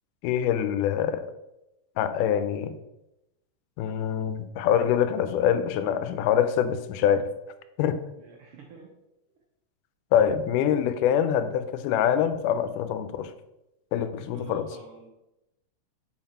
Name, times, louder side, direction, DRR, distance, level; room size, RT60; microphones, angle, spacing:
voice 1, 0.2-1.2 2.0-2.8 3.8-7.2 7.8-8.0 10.1-13.3 13.9-14.8, left 9 dB, 90° left, 11 dB, 2.1 m, -24 dB
voice 2, 8.2-8.9 14.3-15.1, right 5 dB, 90° right, 0 dB, 1.2 m, -46 dB
5.8 x 4.7 x 4.3 m, 0.92 s
omnidirectional pair, 3.6 m